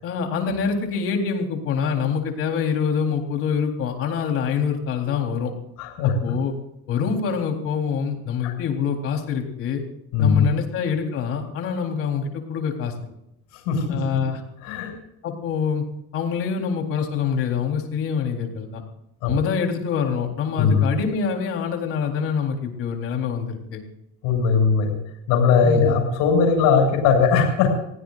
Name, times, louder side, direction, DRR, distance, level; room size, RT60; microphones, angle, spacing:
voice 1, 0.0-5.5 6.0-6.5 6.9-9.8 10.2-12.9 13.9-14.4 15.2-15.8 16.1-18.8 19.2-23.8 25.6-26.0, left 6 dB, 45° left, 2 dB, 4.0 m, -25 dB
voice 2, 5.8-6.3 8.4-8.5 10.1-10.5 13.7-14.0 14.6-14.9 19.2-19.3 20.6-20.9 24.2-24.9 25.3-27.8, left 5 dB, 70° left, 2 dB, 7.0 m, -19 dB
28.0 x 17.0 x 2.6 m, 0.82 s
cardioid pair, 155°, 30 cm